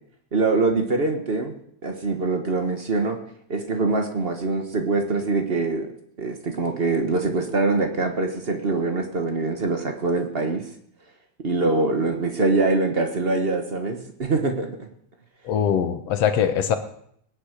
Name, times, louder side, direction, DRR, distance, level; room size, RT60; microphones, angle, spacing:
voice 1, 0.3-1.5 1.8-3.2 3.5-5.9 6.2-10.7 11.4-14.7, right 3 dB, 60° right, 5 dB, 0.6 m, -24 dB
voice 2, 15.4-16.8, left 8 dB, 65° left, 8 dB, 2.1 m, -22 dB
19.0 x 10.5 x 6.6 m, 0.69 s
omnidirectional pair, 3.3 m